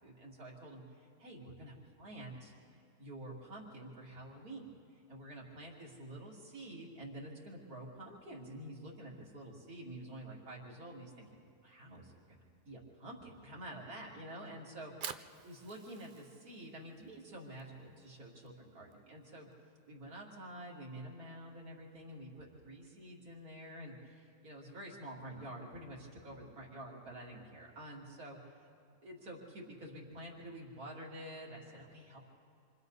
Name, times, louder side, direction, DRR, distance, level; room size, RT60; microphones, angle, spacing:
voice 1, 0.0-2.5 3.0-4.7 4.9-15.2 15.4-19.5 19.9-28.7 29.0-32.2, right 1 dB, 65° right, -3 dB, 3.3 m, -49 dB
Fire, 14.7-20.9, right 7 dB, 85° right, 0.4 m, -51 dB
27.5 x 25.5 x 4.1 m, 2.4 s
omnidirectional pair, 1.7 m